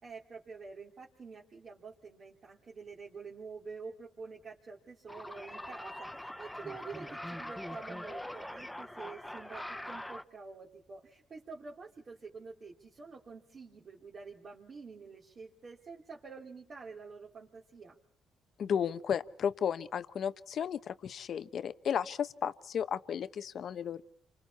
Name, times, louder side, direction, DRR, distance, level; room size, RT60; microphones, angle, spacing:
voice 1, 0.0-18.0, right 4 dB, 45° right, -3 dB, 3.5 m, -48 dB
sound 1, 5.1-10.2, left 1 dB, 5° left, 0.9 m, -43 dB
voice 2, 18.6-24.0, left 8 dB, 60° left, 12 dB, 1.0 m, -34 dB
29.5 x 25.0 x 4.3 m, 0.66 s
cardioid pair, 90°, 0 cm